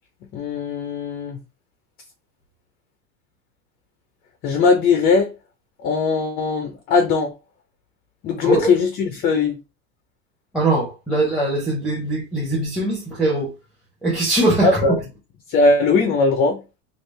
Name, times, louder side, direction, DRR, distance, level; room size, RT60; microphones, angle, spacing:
voice 1, 0.3-1.4 4.4-5.3 5.8-7.3 8.2-9.6 14.6-15.0 15.5-16.6, left 4 dB, 30° left, 0.5 m, -19 dB
voice 2, 10.5-13.5 14.0-15.0, right 2 dB, ahead, 0.8 m, -21 dB
3.3 x 2.4 x 3.1 m
supercardioid pair, 155°, 32 cm